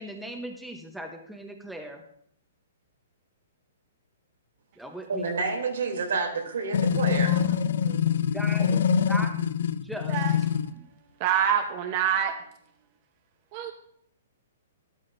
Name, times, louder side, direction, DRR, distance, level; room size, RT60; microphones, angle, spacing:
voice 1, 0.0-2.0 4.8-5.3 8.3-10.2 10.7-10.8, right 1 dB, ahead, 2 dB, 0.8 m, -38 dB
voice 2, 5.1-7.3, right 4 dB, 90° right, 1 dB, 2.9 m, -29 dB
sound 1, 6.7-10.7, left 8 dB, 65° left, 0.5 m, -24 dB
voice 3, 11.2-12.3 13.5-13.7, right 9 dB, 35° right, 6 dB, 0.8 m, -26 dB
13.0 x 12.0 x 2.6 m, 0.68 s
hypercardioid pair, 165°, 0 cm